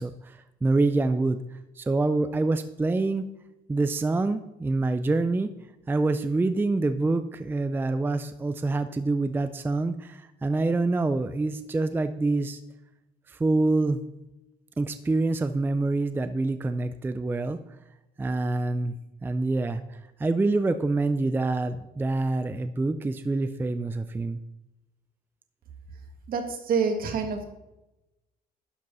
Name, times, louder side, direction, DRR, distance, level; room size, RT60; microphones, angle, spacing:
voice 1, 0.0-3.3 3.7-5.5 5.9-12.6 13.3-14.0 14.8-17.6 18.2-19.0 19.2-24.4, right 2 dB, 10° right, 10 dB, 0.4 m, -26 dB
voice 2, 26.3-27.5, right 5 dB, 60° right, 5 dB, 1.8 m, -27 dB
12.0 x 5.1 x 5.4 m, 0.95 s
cardioid pair, 110°, 17 cm